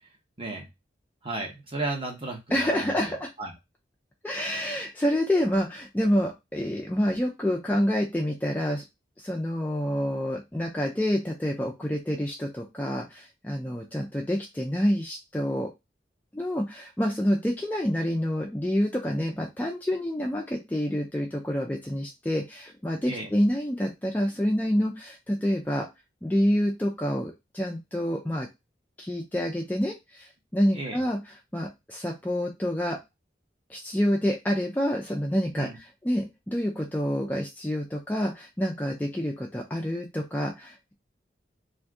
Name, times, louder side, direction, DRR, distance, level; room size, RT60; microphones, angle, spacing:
voice 1, 1.2-3.0 3.4-3.5 23.1-23.3 30.7-31.0 35.5-35.8, right 2 dB, 30° right, 1 dB, 0.9 m, -33 dB
voice 2, 2.5-3.3 4.2-8.8 9.2-15.7 16.3-25.9 26.2-28.5 29.0-31.2 31.5-33.0 33.7-40.9, equal, 10° left, -1 dB, 0.4 m, -28 dB
2.6 x 2.5 x 3.5 m, 0.22 s
head